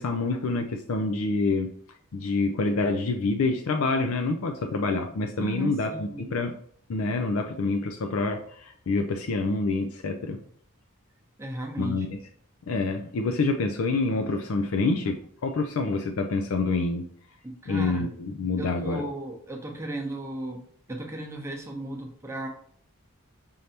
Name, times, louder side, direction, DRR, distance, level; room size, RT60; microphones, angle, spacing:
voice 1, 0.0-1.7 2.1-6.5 6.9-10.4 11.8-12.2 12.7-17.0 17.7-19.1, left 3 dB, 70° left, 6 dB, 0.4 m, -27 dB
voice 2, 5.4-6.3 11.4-12.1 17.4-18.1 18.6-20.6 20.9-22.5, right 1 dB, 15° right, 1 dB, 0.7 m, -35 dB
5.4 x 3.3 x 2.8 m, 0.62 s
head